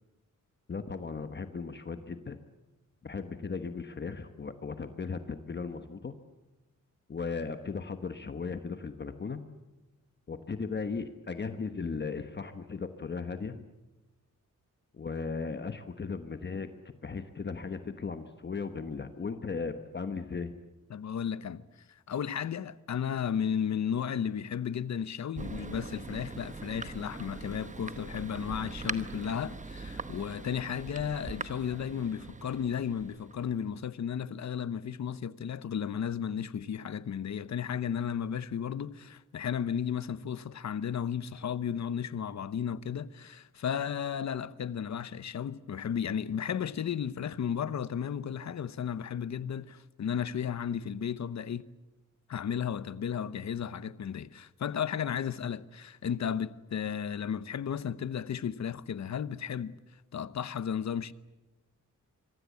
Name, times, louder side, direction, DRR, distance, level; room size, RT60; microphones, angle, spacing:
voice 1, 0.7-2.4 3.0-6.1 7.1-9.4 10.3-13.6 14.9-16.7 17.0-20.5, left 5 dB, 35° left, 1.2 m, -37 dB
voice 2, 20.9-21.6 21.9-51.6 52.3-59.8 60.1-61.1, left 8 dB, 60° left, 0.9 m, -34 dB
Thunder, 25.3-33.7, right 3 dB, 25° right, 1.0 m, -42 dB
26.0 x 24.0 x 8.4 m
wide cardioid pair, 175°, 31 cm